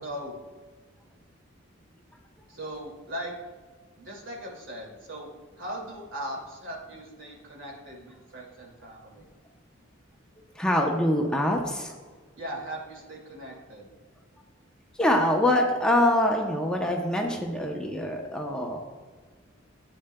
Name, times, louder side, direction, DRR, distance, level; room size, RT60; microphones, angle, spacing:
voice 1, 0.0-0.4 2.5-3.3 4.0-5.3 5.6-9.2 12.4-13.9, equal, 80° right, -1 dB, 2.3 m, -39 dB
voice 2, 10.5-11.9 14.9-18.8, left 1 dB, 5° left, 0 dB, 0.7 m, -24 dB
12.0 x 8.7 x 2.2 m, 1.5 s
head